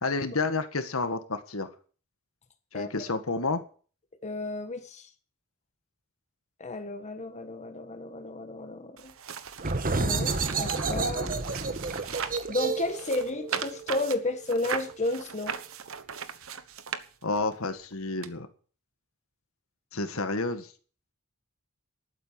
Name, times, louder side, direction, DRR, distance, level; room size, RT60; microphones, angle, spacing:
voice 1, 0.0-1.7 2.7-3.6 17.2-18.5 19.9-20.7, left 3 dB, 80° left, 9 dB, 1.7 m, -30 dB
voice 2, 4.2-5.1 6.6-9.1 10.0-11.3 12.5-15.6, left 2 dB, 35° left, 7 dB, 1.5 m, -32 dB
sound 1, 9.0-12.5 12.9-17.5 18.2-18.3, right 7 dB, 70° right, 1.1 m, -38 dB
sound 2, 9.6-15.0, right 3 dB, 40° right, 1.3 m, -31 dB
11.5 x 9.0 x 7.5 m, 0.40 s
head